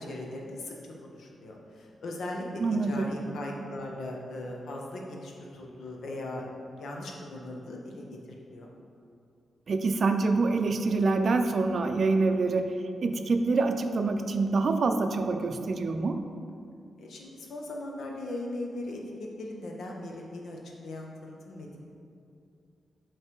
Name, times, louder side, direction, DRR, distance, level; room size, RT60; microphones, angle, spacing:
voice 1, 0.0-6.5 6.7-8.7 17.0-21.8, left 1 dB, 80° left, 0 dB, 0.9 m, -39 dB
voice 2, 2.6-3.2 9.7-12.7 13.0-16.2, right 3 dB, 55° right, 6 dB, 0.4 m, -26 dB
7.6 x 3.3 x 4.5 m, 2.4 s
cardioid pair, 75°, 0 cm